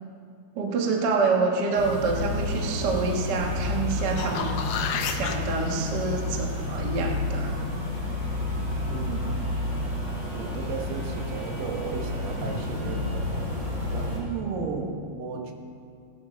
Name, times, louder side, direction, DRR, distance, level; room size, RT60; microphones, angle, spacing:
voice 1, 0.5-4.6 5.1-7.6, right 4 dB, 50° right, 1 dB, 1.2 m, -27 dB
sound 1, 1.7-14.2, left 2 dB, 30° right, 4.4 m, -30 dB
sound 2, 3.9-5.4 10.1-10.2, left 7 dB, 70° left, 1.8 m, -31 dB
voice 2, 8.9-9.5 10.3-13.5 13.9-15.5, right 5 dB, 75° right, 3 dB, 2.8 m, -34 dB
18.0 x 12.0 x 5.0 m, 2.3 s
omnidirectional pair, 4.1 m